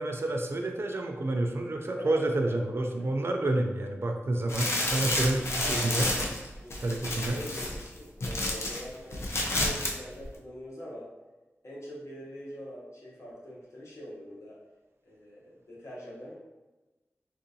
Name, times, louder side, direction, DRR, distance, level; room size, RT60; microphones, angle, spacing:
voice 1, 0.0-6.1 6.8-7.4, right 2 dB, 55° right, 3 dB, 0.4 m, -29 dB
voice 2, 1.9-2.2 5.5-6.0 6.5-6.8 7.1-11.1 11.6-14.6 15.1-16.4, equal, 80° left, -5 dB, 1.1 m, -43 dB
sound 1, 4.5-8.8 9.1-9.9 10.2-10.3, left 1 dB, 60° left, 0.5 m, -30 dB
3.6 x 2.5 x 2.7 m, 1.1 s
wide cardioid pair, 90°, 5 cm